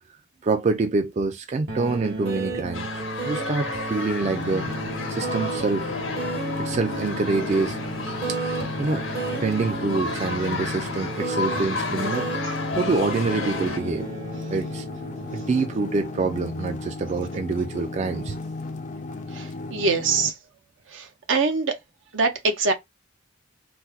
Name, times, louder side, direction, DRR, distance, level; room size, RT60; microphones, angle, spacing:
voice 1, 0.4-2.9 3.2-4.7 5.1-5.9 6.6-7.8 8.8-9.1 9.4-12.3 12.8-14.1 14.5-14.9 15.3-18.4, right 3 dB, 35° right, 0.3 m, -26 dB
sound 1, 1.7-16.8, right 3 dB, 55° right, 1.1 m, -34 dB
sound 2, 2.7-13.8, left 3 dB, 90° left, 1.0 m, -33 dB
sound 3, 4.2-20.3, left 3 dB, 40° left, 0.4 m, -35 dB
voice 2, 19.3-20.3 20.9-21.7 22.1-22.7, right 4 dB, 75° right, 0.7 m, -24 dB
4.1 x 2.1 x 2.3 m
head